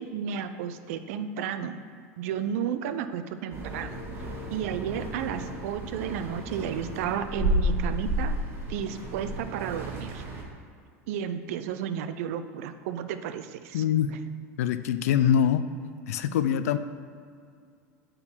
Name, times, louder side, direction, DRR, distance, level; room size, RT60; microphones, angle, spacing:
voice 1, 0.0-1.8 2.2-4.0 4.5-8.4 8.7-10.2 11.1-14.2, right 8 dB, 70° right, 10 dB, 0.5 m, -33 dB
sound 1, 3.5-10.4, equal, 30° right, 1.7 m, -32 dB
voice 2, 13.7-14.1 14.6-15.7 16.1-16.8, left 9 dB, 80° left, 12 dB, 0.4 m, -24 dB
8.6 x 3.9 x 4.5 m, 2.3 s
hypercardioid pair, 95°, 8 cm